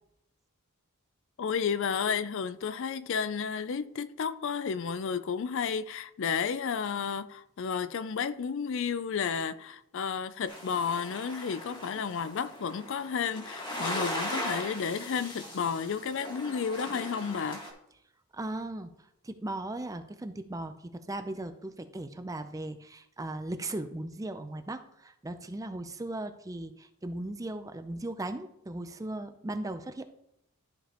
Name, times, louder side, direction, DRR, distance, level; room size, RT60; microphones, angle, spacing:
voice 1, 1.4-17.6, left 6 dB, 60° left, 0.4 m, -32 dB
sound 1, 10.5-17.7, left 1 dB, 20° left, 1.7 m, -39 dB
voice 2, 18.3-30.0, right 2 dB, 15° right, 0.5 m, -37 dB
12.5 x 5.1 x 2.9 m
head